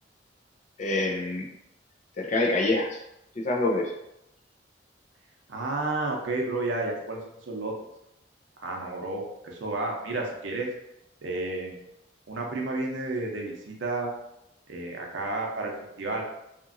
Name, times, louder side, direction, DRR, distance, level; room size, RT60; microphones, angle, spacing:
voice 1, 0.8-1.4 2.2-3.0 3.4-3.9, left 2 dB, 40° left, 1 dB, 0.5 m, -26 dB
voice 2, 5.5-7.7 8.6-10.7 11.2-11.8 12.3-14.1 14.7-15.7 16.0-16.2, right 2 dB, 85° right, 0 dB, 0.6 m, -31 dB
2.9 x 2.5 x 2.5 m, 0.84 s
head